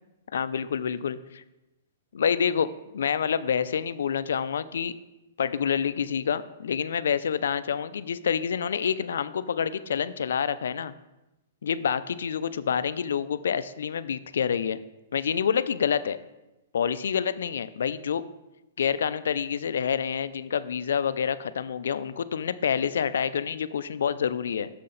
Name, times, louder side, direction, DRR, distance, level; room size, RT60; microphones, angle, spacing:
voice 1, 0.3-1.4 2.1-4.9 5.4-10.9 11.6-14.8 15.1-16.2 16.7-18.2 18.8-24.7, left 7 dB, 80° left, 15 dB, 0.3 m, -27 dB
6.4 x 5.8 x 3.8 m, 1.0 s
hypercardioid pair, 165°, 0 cm